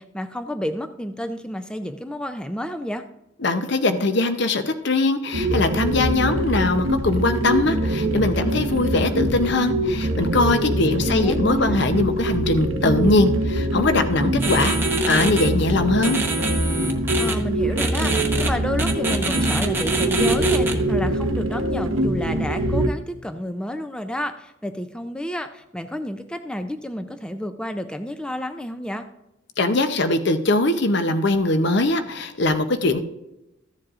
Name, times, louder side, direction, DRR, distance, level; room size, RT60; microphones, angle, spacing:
voice 1, 0.0-3.0 10.7-11.9 17.2-29.0, equal, 5° left, 7 dB, 0.4 m, -30 dB
voice 2, 3.4-14.8 15.1-16.2 29.6-33.0, left 2 dB, 55° left, 8 dB, 0.7 m, -21 dB
sound 1, 5.3-22.9, right 1 dB, 75° right, 0.8 m, -23 dB
sound 2, 14.4-15.5 16.0-17.3 17.8-18.5 18.8-20.7, right 3 dB, 10° right, 0.9 m, -26 dB
14.5 x 7.4 x 2.5 m, 0.91 s
head